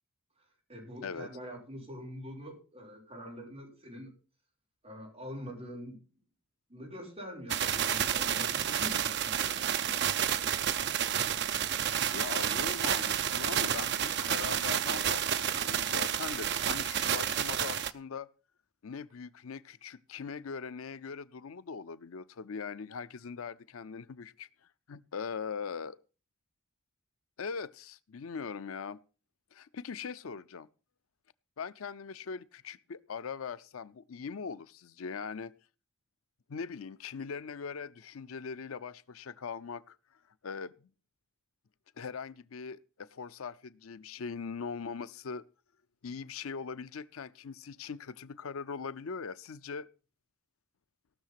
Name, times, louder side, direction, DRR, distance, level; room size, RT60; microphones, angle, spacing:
voice 1, 0.7-4.1 4.8-6.0 6.7-10.0, equal, 30° right, 5.8 m, -45 dB
sound 1, 7.5-17.9, right 9 dB, 55° right, 0.6 m, -30 dB
voice 2, 12.1-18.3 18.8-24.5 24.9-26.0 27.4-29.0 29.5-30.7 31.6-35.5 36.5-40.0 40.4-40.7 42.0-45.4 46.0-49.9, left 5 dB, 80° left, 0.5 m, -41 dB
17.5 x 6.5 x 5.8 m
head